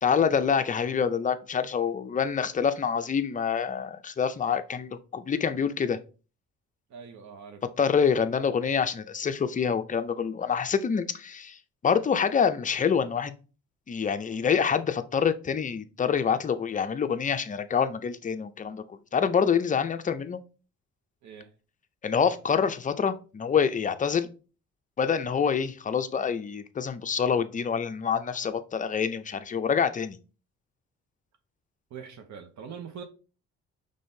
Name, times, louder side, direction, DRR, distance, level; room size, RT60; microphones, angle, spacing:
voice 1, 0.0-6.0 7.6-11.6 11.8-13.3 13.9-18.8 19.1-20.4 22.0-24.3 25.0-30.2, left 6 dB, 25° left, 0.5 m, -26 dB
voice 2, 6.9-7.6 21.2-21.5 31.9-33.0, right 7 dB, 70° right, 0.8 m, -43 dB
5.4 x 3.3 x 2.7 m
cardioid pair, 90°, 30 cm